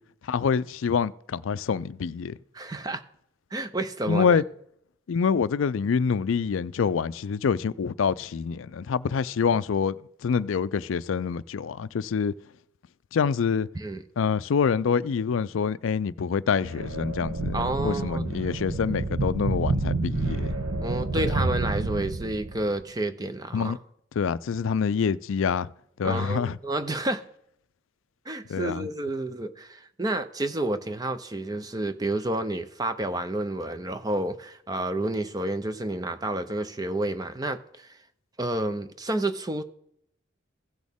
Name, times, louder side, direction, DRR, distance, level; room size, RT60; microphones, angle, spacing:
voice 1, 0.3-2.4 4.1-4.4 5.1-12.3 13.1-13.7 14.2-20.6 21.2-21.3 23.5-23.8 24.2-25.7 26.0-26.6 28.5-28.9, left 6 dB, 75° left, 0.4 m, -26 dB
voice 2, 2.5-3.0 3.5-4.4 13.7-14.0 17.5-18.2 20.8-23.8 26.0-27.2 28.3-38.0 38.4-39.6, right 2 dB, 20° right, 0.5 m, -30 dB
sound 1, 16.6-22.7, right 2 dB, 90° right, 0.8 m, -29 dB
16.0 x 6.3 x 3.5 m
head